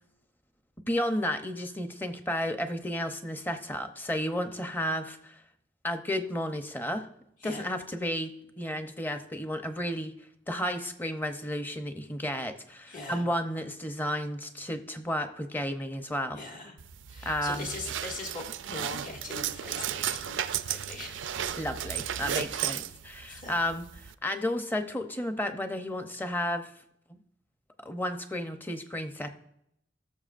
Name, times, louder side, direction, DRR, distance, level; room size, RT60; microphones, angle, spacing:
voice 1, 0.9-5.4 5.8-7.1 7.4-10.1 10.5-16.4 17.2-17.7 21.6-26.7 27.1-27.2 27.8-29.3, left 1 dB, 10° left, 7 dB, 0.8 m, -32 dB
voice 2, 12.9-13.2 16.4-16.8 17.1-21.2 22.5-22.7 23.3-23.7, left 3 dB, 45° left, 2 dB, 1.9 m, -41 dB
sound 1, 16.8-24.1, right 10 dB, 85° right, 0.4 m, -34 dB
17.5 x 7.0 x 2.5 m, 0.77 s
head